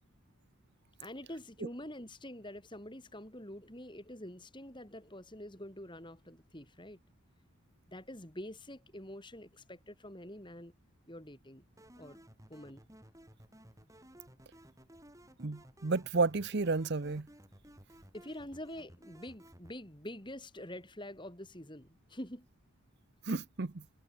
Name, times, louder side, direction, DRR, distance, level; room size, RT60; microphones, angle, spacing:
voice 1, 1.0-7.0 7.9-10.7 11.1-11.6 11.9-12.2 12.5-12.8 18.1-22.5, left 1 dB, 20° left, 4.5 m, -46 dB
sound 1, 11.8-19.8, equal, 15° right, 6.7 m, -57 dB
voice 2, 15.4-17.3 23.3-23.8, right 3 dB, 50° right, 0.7 m, -32 dB
head